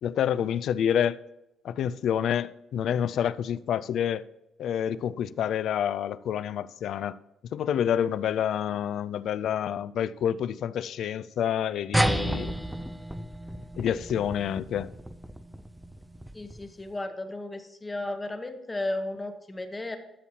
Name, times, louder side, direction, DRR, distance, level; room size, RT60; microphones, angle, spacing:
voice 1, 0.0-1.2 1.6-4.2 4.6-7.2 7.5-12.5 13.8-14.9, left 9 dB, 60° left, 0.4 m, -28 dB
sound 1, 11.9-16.8, right 1 dB, 5° right, 0.4 m, -31 dB
voice 2, 16.3-20.0, left 2 dB, 15° left, 0.9 m, -34 dB
12.5 x 7.3 x 2.8 m
cardioid pair, 170°, 0 cm